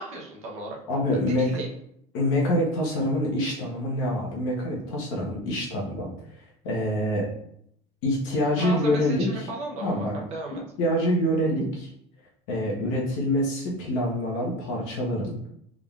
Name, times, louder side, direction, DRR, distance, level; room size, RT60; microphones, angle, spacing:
voice 1, 0.0-0.8 1.1-1.7 8.6-10.6, right 2 dB, 40° right, -1 dB, 0.8 m, -35 dB
voice 2, 0.9-1.6 2.1-6.1 6.6-7.3 8.0-9.3 9.8-10.1 10.8-11.9 12.5-15.3, equal, 65° left, -3 dB, 1.2 m, -26 dB
3.8 x 3.6 x 2.4 m, 0.72 s
cardioid pair, 180°, 16 cm